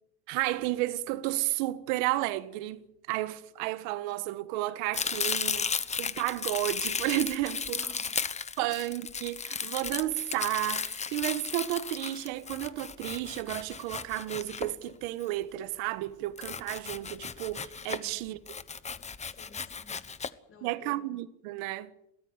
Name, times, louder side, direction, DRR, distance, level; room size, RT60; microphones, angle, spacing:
voice 1, 0.3-5.7 6.0-7.8 8.6-18.6 20.6-21.9, right 16 dB, 85° right, 1.5 m, -32 dB
Domestic sounds home sounds, 4.9-15.2 16.4-18.1 18.5-20.3, left 6 dB, 20° left, 1.0 m, -35 dB
voice 2, 7.6-8.2 8.6-8.7 17.9-18.2 19.3-21.0, left 3 dB, 40° left, 6.4 m, -54 dB
23.0 x 18.0 x 8.1 m
cardioid pair, 125°, 34 cm